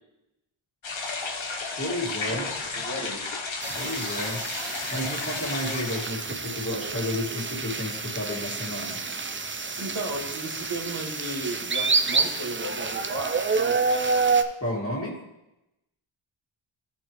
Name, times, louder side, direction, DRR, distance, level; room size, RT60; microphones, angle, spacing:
sound 1, 0.8-6.2, left 4 dB, 70° left, 1.1 m, -33 dB
voice 1, 1.7-2.5 3.7-4.4 4.9-9.0 14.6-15.2, left 1 dB, 25° left, -4 dB, 2.1 m, -31 dB
voice 2, 2.3-3.2 9.8-13.8, right 1 dB, 80° right, -3 dB, 2.2 m, -35 dB
sound 2, 3.6-14.4, right 4 dB, 25° right, 0.5 m, -28 dB
13.0 x 4.4 x 3.1 m, 0.91 s
wide cardioid pair, 70°, 49 cm